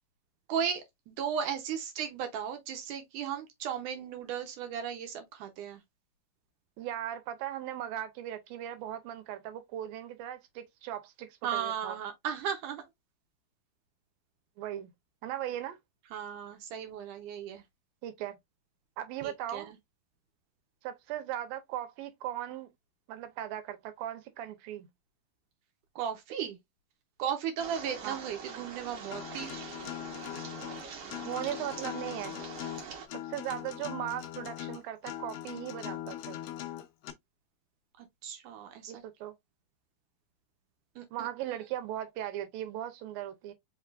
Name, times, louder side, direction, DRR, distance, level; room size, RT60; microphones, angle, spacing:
voice 1, 0.5-5.8 11.4-12.8 16.1-17.6 19.2-19.8 26.0-26.6 27.2-29.5 38.0-39.0 41.0-41.6, right 8 dB, 70° right, 2.2 m, -36 dB
voice 2, 6.8-12.0 14.6-14.9 15.2-15.8 18.0-18.4 19.0-19.7 20.8-22.7 23.1-24.9 28.0-28.2 31.3-32.4 33.2-36.4 38.9-39.3 41.1-43.5, right 11 dB, 90° right, 2.6 m, -38 dB
sound 1, 27.6-33.1, right 5 dB, 55° right, 2.1 m, -44 dB
Acoustic guitar, 29.1-37.1, left 13 dB, 75° left, 1.5 m, -41 dB
5.2 x 3.5 x 2.4 m
omnidirectional pair, 4.0 m